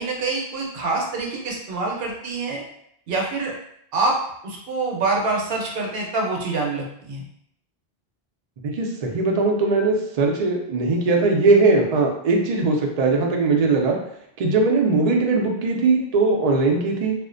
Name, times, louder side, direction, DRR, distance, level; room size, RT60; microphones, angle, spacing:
voice 1, 0.0-2.6 3.1-3.5 3.9-4.2 4.4-7.2, right 3 dB, 70° right, -1 dB, 0.8 m, -25 dB
voice 2, 8.6-14.0 14.4-17.1, right 3 dB, 55° right, 1 dB, 0.4 m, -20 dB
2.4 x 2.1 x 2.4 m, 0.71 s
omnidirectional pair, 1.0 m